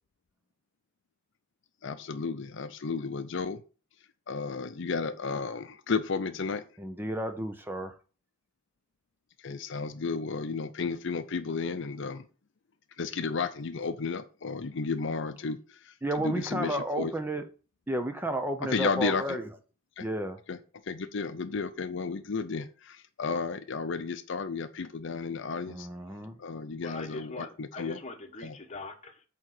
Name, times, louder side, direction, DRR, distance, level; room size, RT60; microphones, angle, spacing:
voice 1, 1.8-3.6 4.3-6.6 9.4-12.2 13.0-17.1 18.7-19.2 20.0-20.1 20.5-20.6 20.8-25.9 26.4-28.0 28.4-28.5, left 4 dB, 60° left, 10 dB, 0.6 m, -33 dB
voice 2, 6.8-8.0 16.0-17.5 17.9-19.5 20.0-20.4 25.7-26.4, right 1 dB, 10° right, 7 dB, 0.7 m, -32 dB
voice 3, 26.8-29.2, left 3 dB, 35° left, 5 dB, 1.2 m, -41 dB
8.6 x 3.7 x 6.5 m, 0.36 s
head